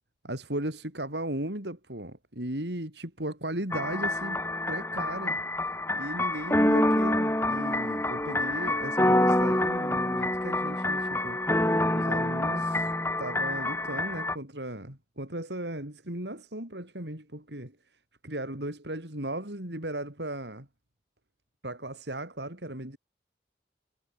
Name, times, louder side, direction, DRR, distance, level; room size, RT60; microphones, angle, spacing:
voice 1, 0.2-4.4 4.7-5.4 5.9-11.7 11.9-12.9 13.2-17.8 18.2-20.7 21.6-23.0, right 1 dB, 85° right, 6.3 m, -36 dB
sound 1, 3.7-14.4, left 1 dB, 15° left, 3.2 m, -27 dB
head